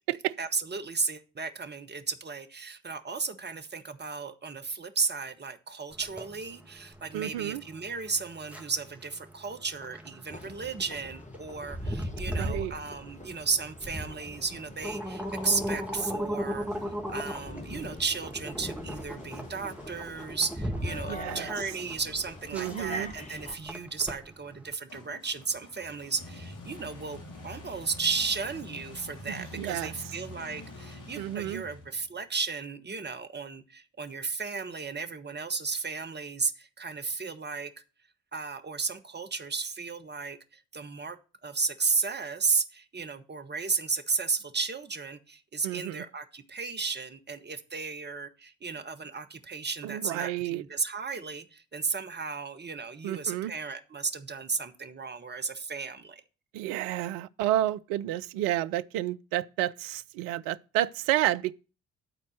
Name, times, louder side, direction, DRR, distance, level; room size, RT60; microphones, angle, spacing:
voice 1, 0.4-37.7 38.3-56.2, right 4 dB, 30° right, 1.2 m, -34 dB
sound 1, 5.9-24.7, equal, 5° right, 2.0 m, -37 dB
voice 2, 7.1-7.6 12.4-12.7 21.1-21.5 22.5-23.1 29.3-29.9 31.2-31.6 45.6-46.0 49.8-50.6 53.0-53.5 56.5-61.5, right 14 dB, 65° right, 0.6 m, -30 dB
sound 2, 10.3-23.5, left 2 dB, 20° left, 1.4 m, -45 dB
sound 3, 14.2-15.8 16.7-23.7 24.9-32.2, left 2 dB, 60° left, 2.8 m, -49 dB
12.0 x 4.3 x 6.3 m
figure-of-eight pair, 40°, 36 cm